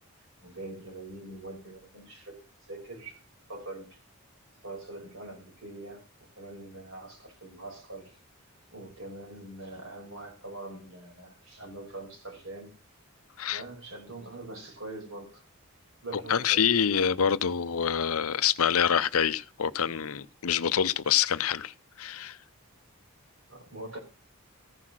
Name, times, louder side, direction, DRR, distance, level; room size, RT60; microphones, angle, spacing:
voice 1, 0.4-2.4 2.7-3.2 3.5-4.0 4.6-8.2 8.7-12.7 13.4-15.4 16.0-16.7 23.5-24.0, right 2 dB, 60° right, 5.5 m, -43 dB
voice 2, 16.1-22.4, left 8 dB, 75° left, 0.6 m, -26 dB
15.0 x 5.8 x 6.2 m
head